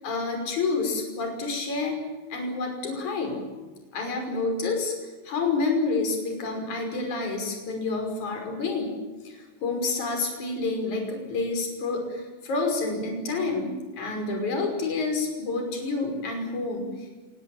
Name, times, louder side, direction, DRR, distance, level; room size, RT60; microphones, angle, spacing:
voice 1, 0.0-2.0 2.3-3.5 3.9-4.9 5.2-8.9 9.2-17.1, left 3 dB, 40° left, 3 dB, 6.8 m, -28 dB
28.5 x 19.0 x 8.8 m, 1.2 s
omnidirectional pair, 5.1 m